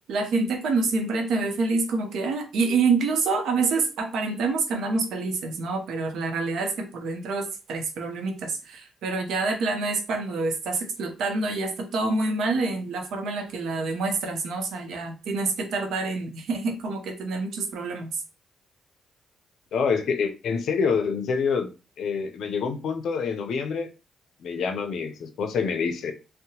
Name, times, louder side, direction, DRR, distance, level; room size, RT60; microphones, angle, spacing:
voice 1, 0.1-18.1, right 3 dB, 75° right, 0.7 m, -27 dB
voice 2, 19.7-21.7 22.0-23.9 24.4-26.1, left 5 dB, 70° left, 0.5 m, -26 dB
2.7 x 2.1 x 2.8 m
cardioid pair, 90°, 0 cm